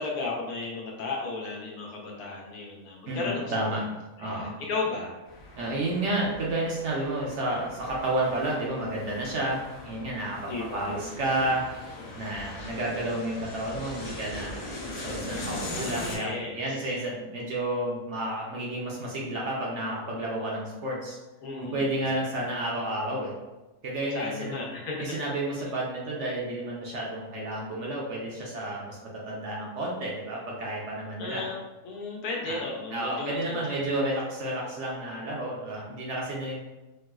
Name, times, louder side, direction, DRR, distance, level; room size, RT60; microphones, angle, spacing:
voice 1, 0.0-3.8 4.2-5.1 10.5-11.5 12.0-12.1 15.8-16.9 21.4-22.1 24.1-25.2 31.2-31.6 31.8-33.7, left 3 dB, 80° left, -1 dB, 1.2 m, -35 dB
voice 2, 3.1-3.8 4.2-4.5 5.6-11.6 12.1-14.7 15.0-21.2 21.6-23.3 23.8-24.5 25.0-29.0 29.2-31.5 32.5-32.6 32.9-36.6, right 1 dB, 60° right, -3 dB, 0.8 m, -31 dB
sound 1, 5.2-16.2, left 1 dB, 45° left, 0.7 m, -40 dB
4.4 x 2.0 x 2.3 m, 1.1 s
omnidirectional pair, 1.6 m